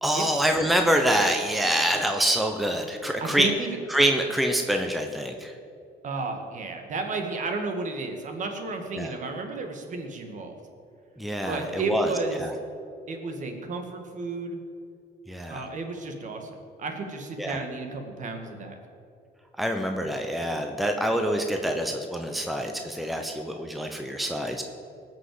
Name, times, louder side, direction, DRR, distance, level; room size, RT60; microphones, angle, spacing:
voice 1, 0.0-3.5 3.9-5.6 9.0-9.1 11.2-12.5 15.3-15.6 17.4-17.6 19.6-24.6, right 1 dB, ahead, 4 dB, 1.0 m, -26 dB
voice 2, 3.2-3.7 6.0-10.6 11.4-12.4 13.1-14.6 15.5-18.7, right 3 dB, 45° right, 4 dB, 2.1 m, -32 dB
19.0 x 6.4 x 7.8 m, 2.5 s
cardioid pair, 110°, 17 cm